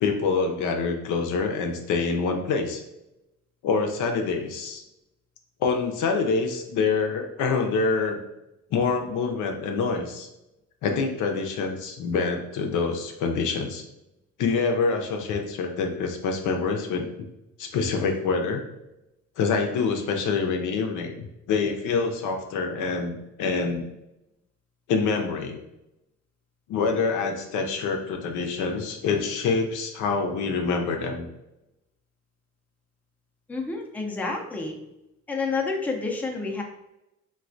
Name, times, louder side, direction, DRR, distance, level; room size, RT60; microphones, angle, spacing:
voice 1, 0.0-2.8 3.6-4.8 5.6-8.2 8.7-10.3 10.8-13.8 14.4-17.1 17.6-18.6 19.4-23.9 24.9-25.6 26.7-31.3, left 4 dB, 85° left, 3 dB, 0.5 m, -26 dB
voice 2, 33.5-34.8 35.3-36.6, left 3 dB, 5° left, 1 dB, 0.4 m, -29 dB
3.2 x 2.3 x 2.5 m, 0.90 s
cardioid pair, 90°, 30 cm